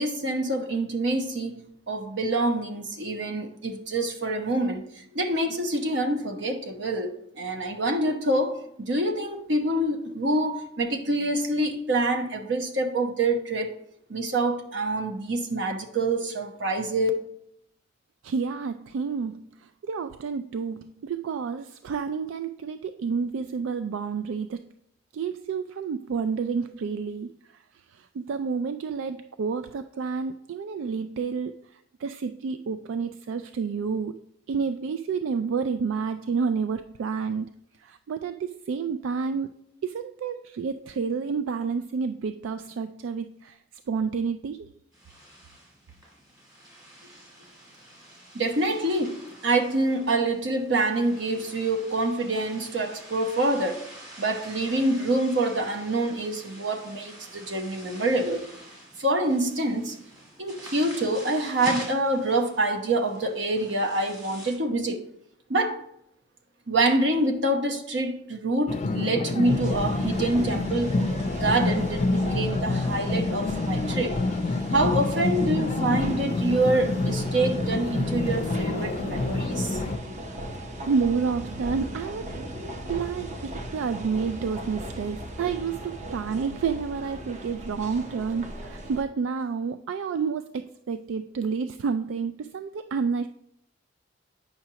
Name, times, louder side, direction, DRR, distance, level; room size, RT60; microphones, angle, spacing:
voice 1, 0.0-13.8 14.1-17.1 48.3-53.8 54.2-58.4 59.0-60.0 60.4-65.1 65.5-65.8 66.7-70.9 71.3-74.2 74.7-79.8, right 2 dB, 65° right, 1.0 m, -26 dB
voice 2, 18.2-24.7 25.1-27.6 27.9-37.5 37.8-39.5 39.8-43.6 43.9-44.7 80.9-82.4 82.9-93.3, right 5 dB, 85° right, 0.3 m, -30 dB
sound 1, 44.9-64.5, right 1 dB, 20° right, 2.1 m, -46 dB
sound 2, 68.7-80.0, left 2 dB, 35° left, 0.4 m, -27 dB
sound 3, 69.4-89.0, right 1 dB, 40° right, 0.8 m, -37 dB
8.6 x 5.7 x 2.9 m
head